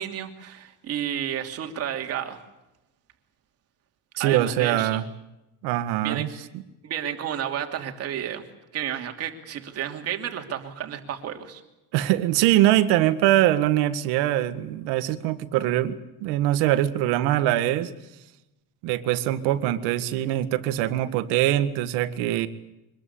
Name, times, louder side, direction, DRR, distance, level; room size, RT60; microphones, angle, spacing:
voice 1, 0.0-2.4 4.2-5.0 6.0-6.3 6.8-8.4 8.7-11.6, right 10 dB, 40° right, 5 dB, 2.8 m, -31 dB
voice 2, 4.2-5.0 5.6-6.3 11.9-17.9 18.8-22.5, right 13 dB, 85° right, 11 dB, 1.8 m, -23 dB
25.0 x 20.5 x 8.6 m, 0.94 s
cardioid pair, 175°, 39 cm